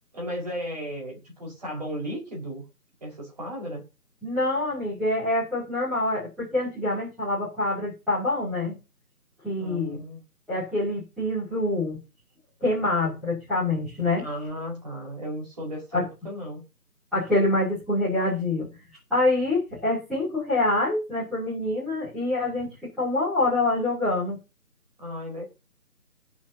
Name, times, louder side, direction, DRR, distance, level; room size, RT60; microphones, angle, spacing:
voice 1, 0.1-2.6 3.0-3.8 9.6-10.2 14.2-16.6 25.0-25.4, equal, 25° right, 5.3 m, -35 dB
voice 2, 4.2-8.7 9.4-10.0 10.5-12.0 12.6-14.2 17.1-18.7 19.1-22.7 23.0-24.3, left 2 dB, ahead, 3.1 m, -25 dB
19.0 x 7.3 x 2.9 m
figure-of-eight pair, 175°, 47 cm